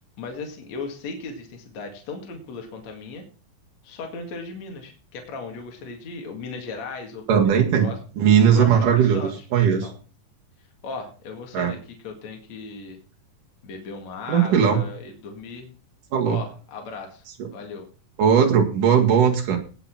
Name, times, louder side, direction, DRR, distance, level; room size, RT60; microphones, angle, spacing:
voice 1, 0.2-3.3 3.8-7.3 7.5-8.0 8.5-9.9 10.8-11.8 12.0-13.0 13.6-15.7 16.3-17.2 17.5-17.9, left 4 dB, 55° left, 3 dB, 3.2 m, -37 dB
voice 2, 7.3-9.9 11.5-11.7 14.3-14.8 16.1-16.4 17.4-17.5 18.2-19.6, right 7 dB, 65° right, 2 dB, 3.7 m, -18 dB
18.0 x 6.1 x 6.0 m, 0.38 s
omnidirectional pair, 4.1 m